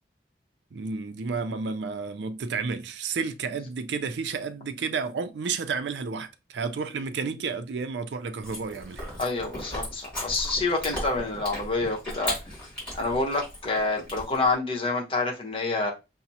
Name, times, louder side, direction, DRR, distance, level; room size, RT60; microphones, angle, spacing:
voice 1, 0.7-9.1, right 5 dB, 80° right, 0.4 m, -31 dB
Chewing mastication, 8.4-14.6, equal, 5° left, 2.2 m, -37 dB
voice 2, 9.2-12.3 13.0-15.9, left 3 dB, 30° left, 0.9 m, -27 dB
5.8 x 2.0 x 2.8 m
head